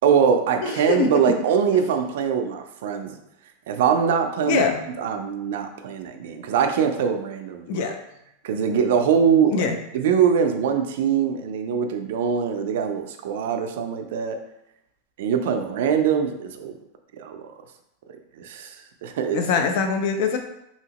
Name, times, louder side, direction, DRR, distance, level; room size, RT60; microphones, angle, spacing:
voice 1, 0.0-3.1 3.7-4.7 5.0-7.9 8.4-9.7 9.9-14.4 15.2-16.7 17.2-17.4 18.4-18.8 19.0-19.4, right 7 dB, 60° right, 5 dB, 0.4 m, -22 dB
voice 2, 0.6-1.1 4.5-4.8 7.7-7.9 9.5-9.8 19.3-20.4, left 6 dB, 45° left, 5 dB, 0.4 m, -23 dB
2.8 x 2.7 x 2.8 m, 0.84 s
supercardioid pair, 175°, 0 cm